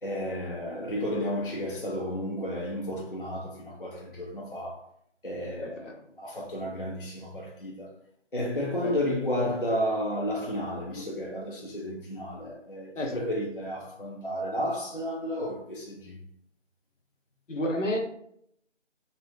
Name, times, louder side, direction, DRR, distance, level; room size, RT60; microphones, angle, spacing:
voice 1, 0.0-4.8 5.2-5.8 6.2-7.9 8.3-16.2, equal, 50° left, 0.4 m, -32 dB
voice 2, 5.6-5.9 8.8-9.0 13.0-13.2 17.5-18.0, left 1 dB, 85° left, 0.8 m, -30 dB
3.2 x 2.1 x 2.3 m
figure-of-eight pair, 175°, 36 cm